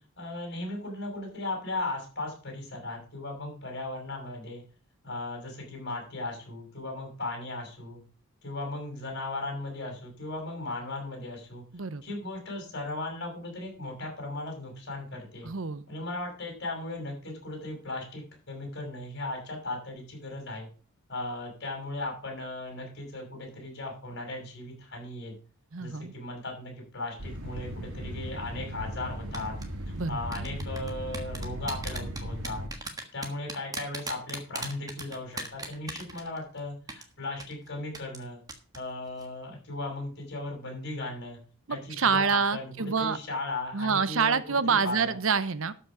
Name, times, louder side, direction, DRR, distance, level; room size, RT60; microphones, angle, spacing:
voice 1, 0.2-4.6 5.0-8.0 8.4-11.6 12.0-15.5 15.9-20.7 21.1-25.3 25.8-29.5 30.1-32.6 33.1-38.4 38.7-41.4 41.7-44.4 44.6-45.2, left 2 dB, 50° left, 1 dB, 6.1 m, -37 dB
voice 2, 15.4-15.9 25.7-26.1 29.9-30.2 41.7-43.2 43.7-45.7, right 5 dB, 65° right, 15 dB, 0.7 m, -27 dB
sound 1, 27.2-32.7, equal, 85° right, 2.3 m, -37 dB
sound 2, 29.3-29.7 30.3-36.6 36.9-37.0 37.4-37.5 37.9-38.2 38.5-38.8 39.1-39.3, right 3 dB, 15° right, 1.4 m, -37 dB
12.5 x 6.0 x 6.0 m, 0.38 s
head